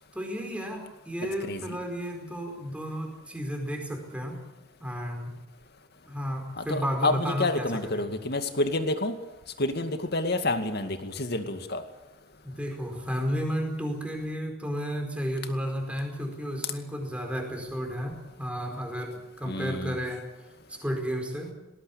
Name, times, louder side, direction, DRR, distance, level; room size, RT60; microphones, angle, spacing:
voice 1, 0.1-4.4 4.8-5.3 6.1-8.1 12.4-20.2 20.7-21.5, equal, 5° right, 3 dB, 4.8 m, -32 dB
voice 2, 1.4-1.8 6.6-9.1 9.6-11.8 19.5-20.0, left 2 dB, 50° left, 7 dB, 2.2 m, -29 dB
19.5 x 19.0 x 8.6 m, 1.0 s
head